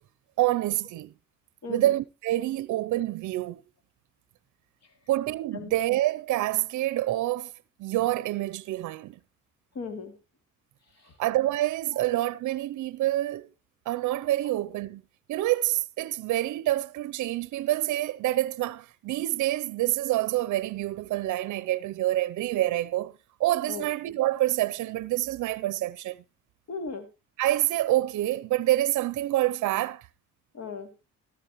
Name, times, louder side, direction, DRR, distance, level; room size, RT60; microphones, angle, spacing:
voice 1, 0.4-1.1 1.7-3.6 5.1-7.5 7.8-9.2 11.2-13.5 13.9-15.0 15.3-26.2 27.4-30.1, right 15 dB, 70° right, 0.6 m, -27 dB
voice 2, 1.6-1.9 4.8-4.9 5.5-5.7 9.7-10.1 10.9-11.1 23.7-23.9 26.7-27.1 30.5-30.9, left 4 dB, 60° left, 2.6 m, -37 dB
14.0 x 13.5 x 3.0 m
cardioid pair, 90°, 30 cm